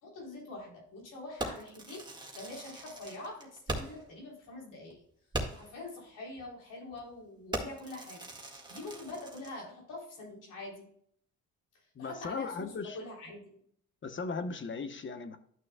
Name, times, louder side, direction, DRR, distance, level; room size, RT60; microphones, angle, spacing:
voice 1, 0.0-2.1 2.3-5.0 5.5-8.3 8.7-10.9 11.7-13.6, left 2 dB, 85° left, 3.6 m, -45 dB
Fireworks, 1.4-4.1 4.5-4.6 4.9-5.0 5.3-5.8 6.4-6.6 6.9-7.2 7.5-9.6, right 1 dB, 15° right, 1.9 m, -40 dB
voice 2, 11.9-13.0 14.0-15.4, left 4 dB, 40° left, 1.1 m, -37 dB
12.0 x 6.2 x 2.3 m
cardioid pair, 100°, 30 cm